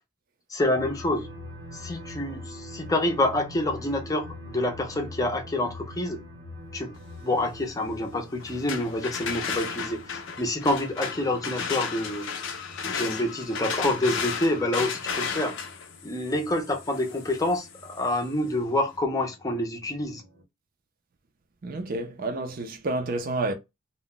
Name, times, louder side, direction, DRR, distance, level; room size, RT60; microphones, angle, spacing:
voice 1, 0.5-1.3 1.7-6.2 6.7-6.9 7.2-12.3 12.8-15.6 16.0-20.2, left 1 dB, 15° left, 0.6 m, -27 dB
sound 1, 0.7-20.4, left 1 dB, 90° right, 1.0 m, -45 dB
sound 2, 8.4-18.2, left 6 dB, 65° left, 0.5 m, -34 dB
voice 2, 21.6-23.5, right 2 dB, 45° right, 0.5 m, -29 dB
2.3 x 2.1 x 3.6 m
head